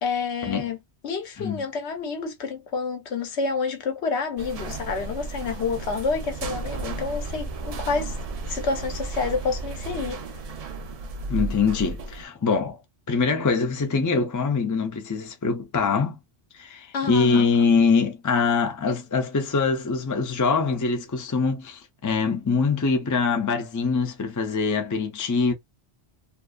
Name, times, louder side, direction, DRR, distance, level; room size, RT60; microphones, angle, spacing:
voice 1, 0.0-0.8 1.0-8.2 8.5-10.2 16.9-17.5 18.9-19.0, left 4 dB, 70° left, 1.0 m, -28 dB
sound 1, 4.4-12.2, right 3 dB, 65° right, 0.3 m, -33 dB
voice 2, 11.3-12.8 13.1-16.2 16.5-25.5, left 4 dB, 25° left, 0.4 m, -23 dB
2.6 x 2.3 x 2.4 m
omnidirectional pair, 1.2 m